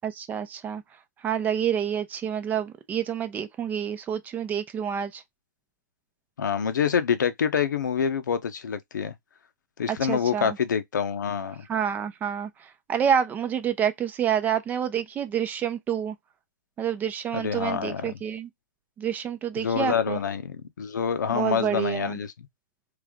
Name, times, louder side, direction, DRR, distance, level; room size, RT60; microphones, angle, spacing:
voice 1, 0.0-0.8 1.2-5.2 9.9-10.6 11.7-16.2 16.8-18.5 19.0-20.2 21.3-22.2, right 8 dB, 15° right, 0.6 m, -28 dB
voice 2, 6.4-9.1 9.8-11.7 17.3-18.1 19.6-22.5, left 7 dB, 80° left, 0.9 m, -26 dB
3.4 x 3.4 x 3.6 m
hypercardioid pair, 140°, 10 cm